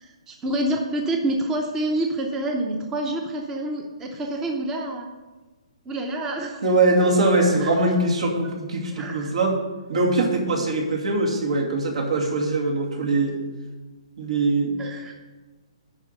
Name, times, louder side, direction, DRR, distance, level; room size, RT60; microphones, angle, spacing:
voice 1, 0.0-5.1 5.9-6.6 7.6-7.7 9.0-9.3 14.8-15.1, right 1 dB, 10° right, 2 dB, 0.7 m, -27 dB
voice 2, 6.6-9.5 9.9-13.4 14.2-14.8, right 2 dB, 70° right, 0 dB, 2.5 m, -22 dB
11.0 x 4.7 x 6.7 m, 1.2 s
hypercardioid pair, 160°, 3 cm